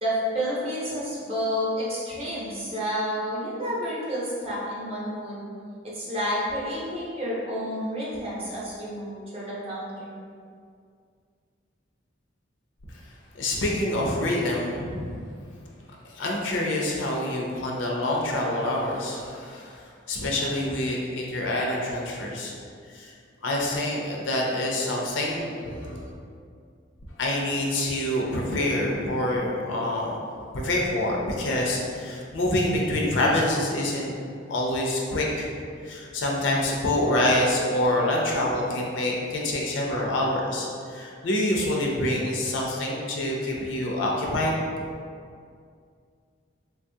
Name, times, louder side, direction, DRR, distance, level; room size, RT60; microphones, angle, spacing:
voice 1, 0.0-5.4 5.8-10.1, equal, 30° right, -7 dB, 0.7 m, -30 dB
voice 2, 13.3-15.2 16.0-22.5 22.9-23.1 23.4-26.1 27.2-30.2 30.5-34.1 34.5-35.5 35.8-44.6, left 1 dB, 75° left, -2 dB, 0.5 m, -26 dB
3.2 x 2.3 x 2.7 m, 2.2 s
head